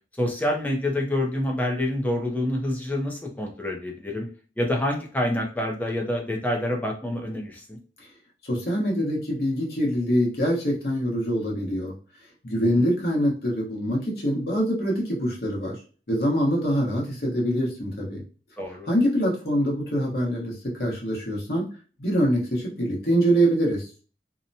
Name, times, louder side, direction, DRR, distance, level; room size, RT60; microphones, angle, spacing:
voice 1, 0.2-4.3 4.6-7.8 18.6-18.9, left 1 dB, 10° left, 1 dB, 0.5 m, -27 dB
voice 2, 8.4-11.9 12.4-15.7 16.1-18.2 18.8-21.6 22.0-23.9, equal, 60° left, -3 dB, 1.0 m, -24 dB
2.8 x 2.1 x 2.6 m, 0.38 s
head